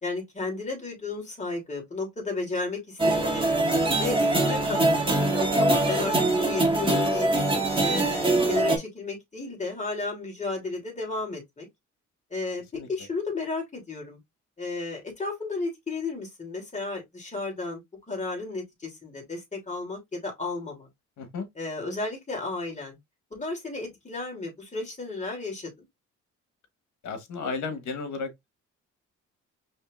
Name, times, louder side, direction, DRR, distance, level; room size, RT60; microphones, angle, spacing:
voice 1, 0.0-3.6 4.0-4.8 5.1-7.3 7.8-11.7 12.3-14.2 14.6-17.8 18.1-20.9 21.6-23.0 23.3-25.7, left 3 dB, 25° left, 2.9 m, -33 dB
sound 1, 3.0-8.8, right 2 dB, 15° right, 1.8 m, -23 dB
voice 2, 21.2-21.5 27.0-28.5, left 4 dB, 70° left, 1.5 m, -33 dB
5.3 x 3.3 x 2.5 m
cardioid pair, 90°, 30 cm